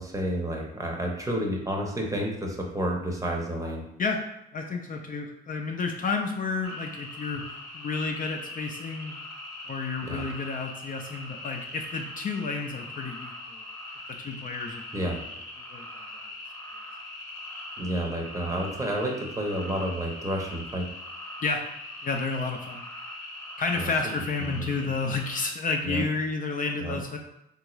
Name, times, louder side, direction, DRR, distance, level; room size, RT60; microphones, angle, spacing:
voice 1, 0.0-3.8 10.0-10.3 14.9-15.2 17.8-20.9 23.7-23.9 24.4-24.9 25.8-26.0 26.8-27.0, right 1 dB, 15° right, 0 dB, 0.7 m, -30 dB
voice 2, 4.5-9.2 9.7-13.6 14.2-15.1 15.7-15.9 21.4-21.7 22.0-22.8 23.6-27.2, left 4 dB, 45° left, 3 dB, 0.5 m, -31 dB
sound 1, 6.6-25.5, left 1 dB, 15° left, 1.0 m, -41 dB
3.5 x 2.5 x 3.0 m, 0.81 s
cardioid pair, 90°, 20 cm